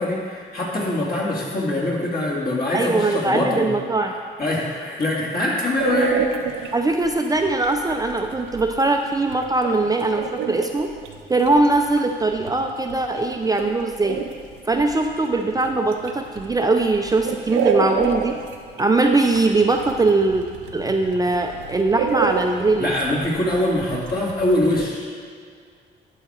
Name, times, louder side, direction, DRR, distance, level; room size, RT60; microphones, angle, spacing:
voice 1, 0.0-3.7 4.4-6.7 22.8-25.1, left 1 dB, 50° left, -4 dB, 2.4 m, -23 dB
voice 2, 2.7-4.1 6.7-10.9 11.3-14.2 14.7-18.3 18.8-20.4 20.7-22.9, right 2 dB, 20° right, 3 dB, 0.5 m, -21 dB
sound 1, 5.8-24.9, right 7 dB, 90° right, 0.7 m, -30 dB
11.5 x 5.0 x 4.4 m, 2.1 s
cardioid pair, 90°, 20 cm